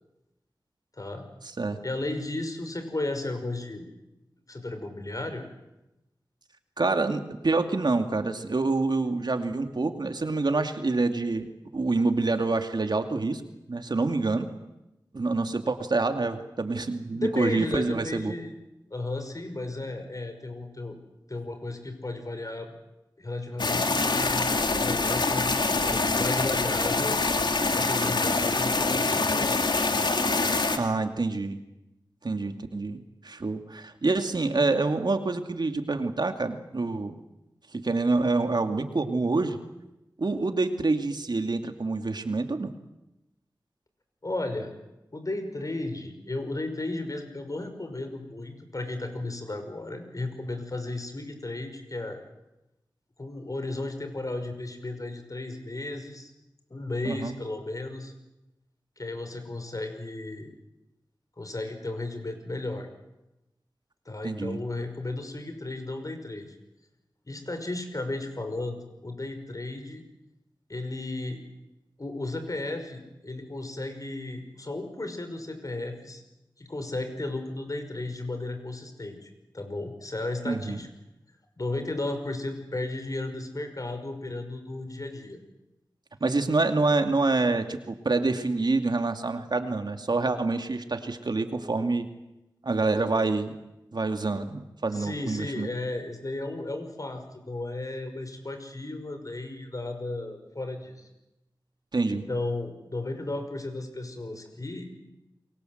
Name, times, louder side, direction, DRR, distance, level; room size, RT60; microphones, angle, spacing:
voice 1, 1.0-1.3 1.8-3.8 4.5-5.4 17.1-18.5 18.9-21.0 21.3-22.7 23.2-27.2 27.7-29.8 44.2-44.7 45.1-52.2 53.2-56.3 56.7-58.1 59.0-60.5 61.4-62.9 64.1-66.5 67.3-68.8 69.0-70.0 70.7-71.4 72.0-76.2 76.6-80.9 81.6-85.4 94.9-101.1 102.1-104.9, left 2 dB, 45° left, 7 dB, 5.6 m, -34 dB
voice 2, 6.8-13.4 13.7-14.5 15.1-18.4 30.8-31.6 32.2-37.2 37.7-39.6 40.2-42.7 57.0-57.3 64.2-64.6 80.5-80.8 86.2-92.1 92.6-93.5 93.9-95.7 101.9-102.3, right 3 dB, 65° right, 7 dB, 2.4 m, -27 dB
sound 1, 23.6-30.8, left 3 dB, 70° left, 2.7 m, -25 dB
29.0 x 23.0 x 8.0 m, 0.96 s
cardioid pair, 45°, 8 cm